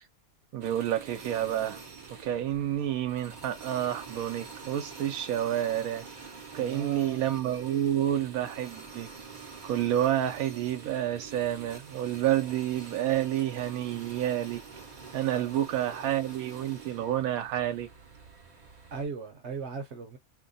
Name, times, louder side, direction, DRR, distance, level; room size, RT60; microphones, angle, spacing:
voice 1, 0.5-1.8 2.2-9.1 9.6-14.6 15.1-17.9, right 11 dB, 85° right, 1.1 m, -29 dB
sound 1, 0.6-19.0, right 5 dB, 40° right, 0.6 m, -46 dB
voice 2, 6.5-7.3 15.3-15.5 18.9-20.2, right 4 dB, 60° right, 0.9 m, -38 dB
2.8 x 2.2 x 3.9 m
omnidirectional pair, 1.5 m